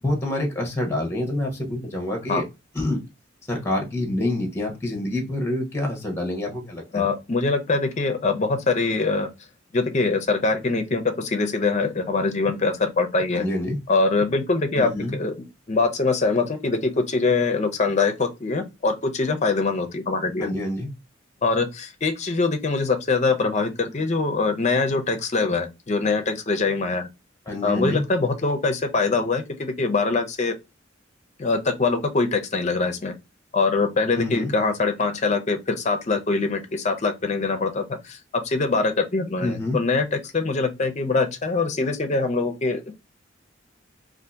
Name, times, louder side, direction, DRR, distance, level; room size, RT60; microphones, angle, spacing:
voice 1, 0.0-2.4 2.7-3.0 3.5-7.1 13.3-13.8 14.8-15.2 20.4-20.9 27.5-28.0 34.1-34.5 39.4-39.8, left 1 dB, 15° left, 0.8 m, -27 dB
voice 2, 6.9-9.3 9.7-13.4 13.9-15.3 15.7-20.5 21.4-27.1 27.6-30.5 31.4-33.1 33.5-42.9, left 3 dB, 40° left, 0.5 m, -23 dB
2.7 x 2.5 x 3.3 m
head